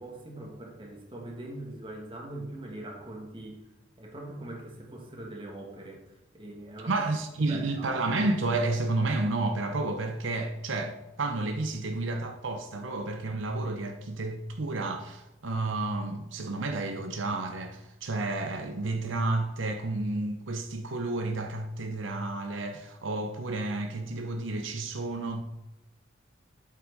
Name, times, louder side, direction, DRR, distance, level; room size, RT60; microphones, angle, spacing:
voice 1, 0.0-3.6 4.0-6.9 7.4-7.9, right 1 dB, 25° right, 1.9 m, -42 dB
voice 2, 6.9-25.4, right 2 dB, 80° right, 0.8 m, -31 dB
8.4 x 7.6 x 4.0 m
head